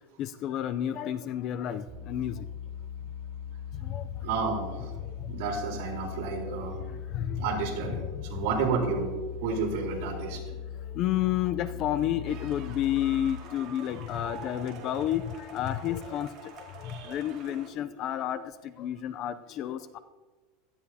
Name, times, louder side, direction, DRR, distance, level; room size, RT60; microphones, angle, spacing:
voice 1, 0.2-2.5 3.7-4.1 5.0-5.3 6.5-7.4 8.0-8.5 10.3-10.4 10.9-20.0, left 11 dB, 40° left, 13 dB, 0.5 m, -31 dB
sound 1, 1.9-13.3, left 8 dB, 15° right, 2.4 m, -40 dB
voice 2, 4.2-4.9 5.3-6.8 7.4-9.2 9.4-10.4 16.8-17.2, right 5 dB, 60° right, -1 dB, 4.0 m, -31 dB
sound 2, 12.3-17.7, right 7 dB, 40° right, 2.3 m, -47 dB
17.0 x 13.0 x 2.8 m, 1.3 s
supercardioid pair, 150°, 0 cm